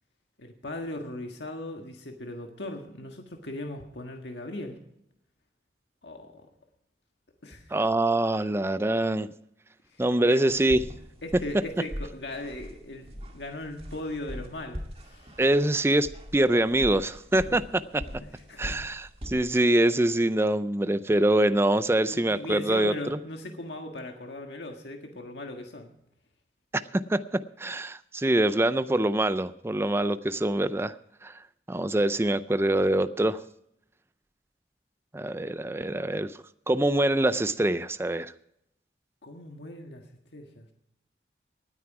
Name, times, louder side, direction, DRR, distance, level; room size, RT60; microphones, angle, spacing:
voice 1, 0.4-4.8 6.0-6.5 7.4-7.8 9.9-10.6 11.2-15.3 17.3-17.4 18.3-18.8 22.1-25.9 39.2-40.7, left 1 dB, 80° left, 3 dB, 1.6 m, -39 dB
voice 2, 7.7-9.3 10.0-10.8 15.4-17.6 18.6-23.2 26.9-30.9 31.2-31.3 31.7-33.4 35.1-36.4 36.7-38.3, right 1 dB, 15° right, 13 dB, 0.4 m, -24 dB
sound 1, 10.5-19.6, equal, 35° right, 1.9 m, -42 dB
19.0 x 9.6 x 4.8 m, 0.79 s
head